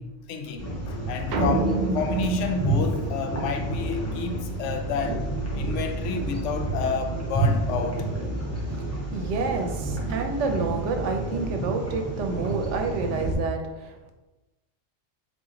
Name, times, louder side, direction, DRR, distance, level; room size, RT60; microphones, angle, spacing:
voice 1, 0.0-5.2 5.5-8.1, left 5 dB, 75° left, 6 dB, 0.9 m, -30 dB
sound 1, 0.6-13.3, right 2 dB, 15° left, 0.7 m, -29 dB
sound 2, 1.3-3.8, right 2 dB, 60° right, 0.5 m, -28 dB
voice 2, 9.1-14.1, right 4 dB, 75° right, 5 dB, 0.9 m, -29 dB
3.9 x 3.0 x 3.7 m, 1.1 s
omnidirectional pair, 1.3 m